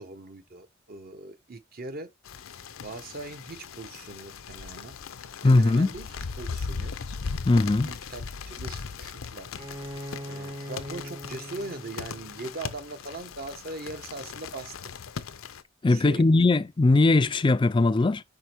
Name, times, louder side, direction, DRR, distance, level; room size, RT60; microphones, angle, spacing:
voice 1, 0.0-2.1 2.8-5.0 5.4-6.1 6.4-6.9 7.6-9.5 10.3-14.7 15.9-16.2, right 2 dB, 45° right, 0.9 m, -40 dB
sound 1, 2.2-15.6, left 5 dB, 75° left, 0.6 m, -38 dB
voice 2, 5.4-5.9 7.4-7.9 15.8-18.2, left 2 dB, 25° left, 0.3 m, -20 dB
Bowed string instrument, 9.6-13.2, equal, 30° right, 0.7 m, -41 dB
5.2 x 4.9 x 4.4 m
head